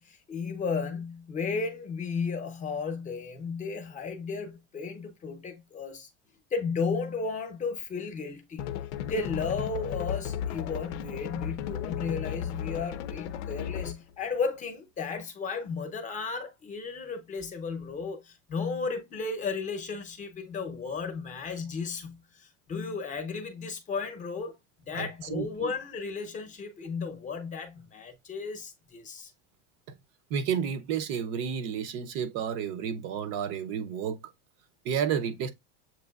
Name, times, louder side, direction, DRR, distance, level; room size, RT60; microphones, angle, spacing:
voice 1, 0.0-6.1 6.5-8.7 9.0-24.6 24.9-29.3, left 5 dB, 20° left, 0.9 m, -34 dB
sound 1, 8.6-14.1, left 9 dB, 70° left, 0.7 m, -35 dB
voice 2, 24.9-25.7 29.9-30.0 30.3-34.2 34.8-35.5, right 8 dB, 40° right, 0.6 m, -31 dB
7.3 x 2.9 x 2.3 m
supercardioid pair, 155°, 37 cm